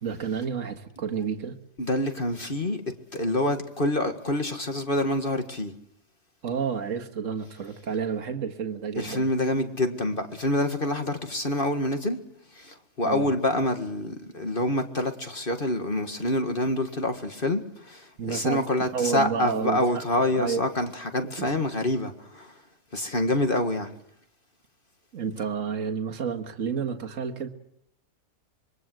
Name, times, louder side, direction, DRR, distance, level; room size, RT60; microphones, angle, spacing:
voice 1, 0.0-1.6 6.4-9.3 13.1-13.3 18.2-18.7 18.9-19.8 20.3-20.6 21.4-21.5 25.1-27.5, right 6 dB, 55° right, 2.1 m, -30 dB
voice 2, 1.8-2.8 3.1-5.7 9.0-12.2 12.5-22.6 22.9-23.9, left 1 dB, 35° left, 1.9 m, -27 dB
26.5 x 23.0 x 7.8 m
omnidirectional pair, 1.6 m